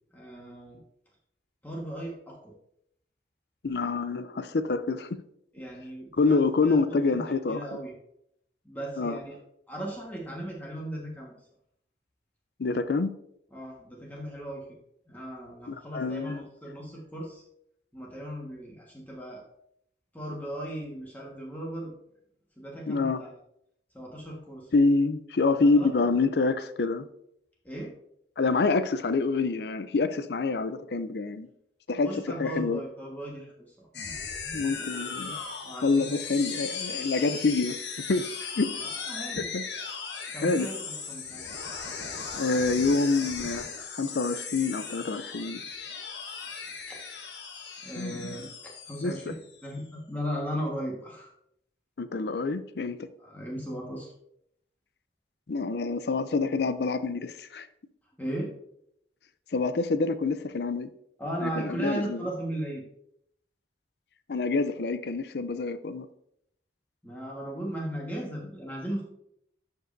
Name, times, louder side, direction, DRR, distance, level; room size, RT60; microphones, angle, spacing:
voice 1, 0.1-0.8 1.6-2.5 5.5-6.8 7.1-7.9 8.6-9.4 9.7-11.3 13.5-14.6 15.1-17.4 17.9-19.4 20.1-21.9 22.6-23.3 23.9-24.7 25.6-25.9 27.6-27.9 32.0-33.5 33.8-33.9 35.6-36.2 36.9-37.1 38.8-39.5 40.3-41.5 46.9-47.0 47.8-48.5 48.9-51.3 53.2-54.1 58.2-58.5 61.2-62.8 67.0-69.0, right 1 dB, 10° left, -3 dB, 1.4 m, -37 dB
voice 2, 3.6-5.2 6.1-7.8 9.0-9.2 12.6-13.1 15.7-16.5 22.9-23.2 24.7-27.1 28.4-31.5 31.9-32.8 34.5-35.4 35.8-37.8 38.1-38.7 39.4-39.6 40.4-40.7 42.3-45.6 48.0-48.4 49.0-49.1 52.0-53.1 55.5-57.7 59.5-60.9 61.4-62.2 64.3-66.1, left 3 dB, 70° left, 12 dB, 0.5 m, -27 dB
sound 1, 33.9-49.8, left 5 dB, 90° left, 1.2 m, -38 dB
12.0 x 5.3 x 2.6 m, 0.75 s
head